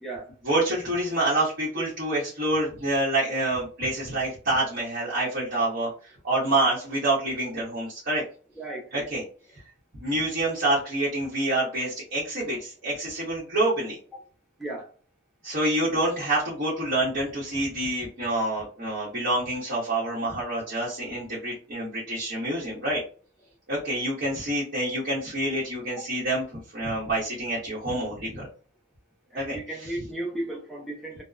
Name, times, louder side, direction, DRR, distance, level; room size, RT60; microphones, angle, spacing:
voice 1, 0.4-8.2 8.9-9.2 10.0-14.0 15.4-23.0 23.7-28.5 29.3-29.9, right 1 dB, 70° right, 1.1 m, -27 dB
voice 2, 8.6-9.1 14.6-14.9 29.3-31.2, right 1 dB, ahead, 0.6 m, -35 dB
2.8 x 2.1 x 2.4 m
head